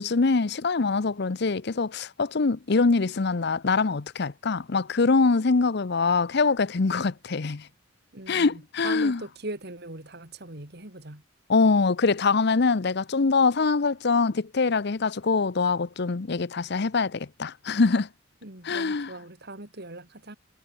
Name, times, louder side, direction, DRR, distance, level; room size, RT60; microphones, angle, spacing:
voice 1, 0.0-7.7 8.3-9.2 11.5-18.1 18.6-19.1, left 4 dB, 55° left, 0.7 m, -24 dB
voice 2, 8.1-11.2 18.4-20.4, right 2 dB, 55° right, 3.5 m, -40 dB
head